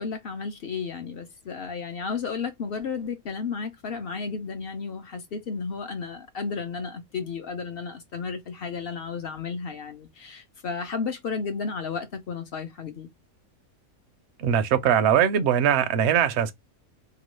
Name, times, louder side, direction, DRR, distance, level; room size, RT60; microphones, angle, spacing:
voice 1, 0.0-13.1, left 5 dB, 55° left, 0.6 m, -33 dB
voice 2, 14.4-16.5, right 9 dB, 65° right, 0.7 m, -21 dB
2.9 x 2.3 x 3.0 m
omnidirectional pair, 1.5 m